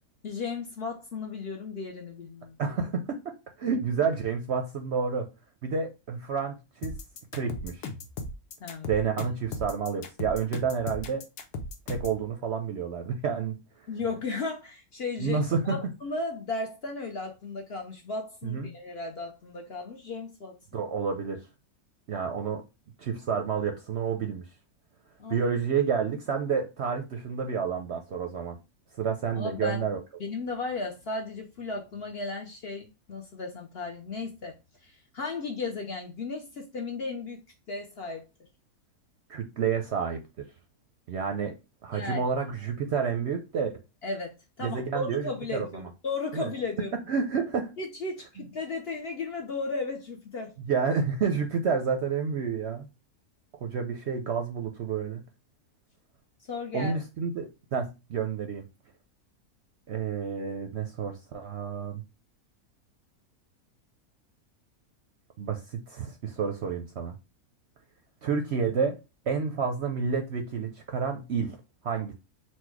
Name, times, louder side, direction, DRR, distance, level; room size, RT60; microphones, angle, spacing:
voice 1, 0.2-2.6 8.6-8.9 13.9-20.5 25.2-25.4 29.4-29.8 30.2-34.5 34.8-38.2 41.9-42.2 44.0-46.9 47.8-50.5 56.5-56.9, left 3 dB, 55° left, 0.7 m, -35 dB
voice 2, 2.6-5.3 5.6-6.9 7.3-7.9 8.9-11.2 11.9-13.5 15.2-15.7 18.4-18.7 20.7-21.4 22.1-22.6 23.0-24.4 25.3-28.6 28.9-30.0 39.3-40.2 41.1-41.5 41.8-43.8 44.6-45.9 46.3-46.5 47.1-47.7 50.7-52.9 53.6-55.2 56.7-58.6 59.9-62.0 65.4-67.1 68.2-69.0 69.3-71.6 71.8-72.1, right 6 dB, 60° right, 0.7 m, -29 dB
sound 1, 6.8-12.2, left 2 dB, 85° left, 1.3 m, -37 dB
4.3 x 2.2 x 4.5 m
omnidirectional pair, 1.6 m